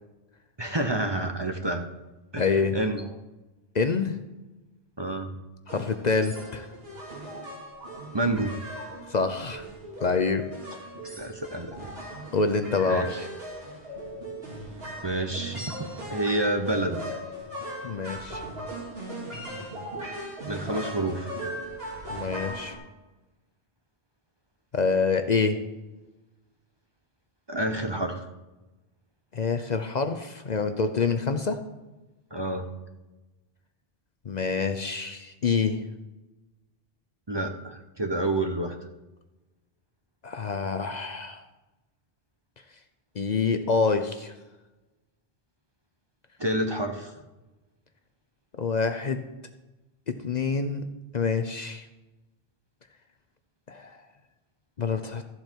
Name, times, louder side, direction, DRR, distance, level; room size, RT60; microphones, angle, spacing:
voice 1, 0.6-1.9 2.3-3.0 5.0-5.3 8.1-8.6 11.2-11.9 12.9-13.3 15.0-15.7 16.1-17.2 20.5-21.3 27.5-28.3 32.3-32.7 37.3-38.8 46.4-47.2, right 1 dB, 30° right, 5 dB, 0.8 m, -29 dB
voice 2, 2.4-2.7 3.7-4.2 5.7-6.7 9.1-9.7 10.0-10.4 12.3-13.1 17.8-18.4 22.1-22.8 24.7-25.6 29.3-31.6 34.3-35.8 40.2-41.4 43.2-44.3 48.6-49.2 50.2-50.8 51.1-51.8 53.7-54.0 54.8-55.2, left 4 dB, 50° left, 8 dB, 0.7 m, -26 dB
sound 1, 5.7-22.8, right 1 dB, 70° right, 2.7 m, -38 dB
13.5 x 7.8 x 4.5 m, 1.1 s
omnidirectional pair, 1.0 m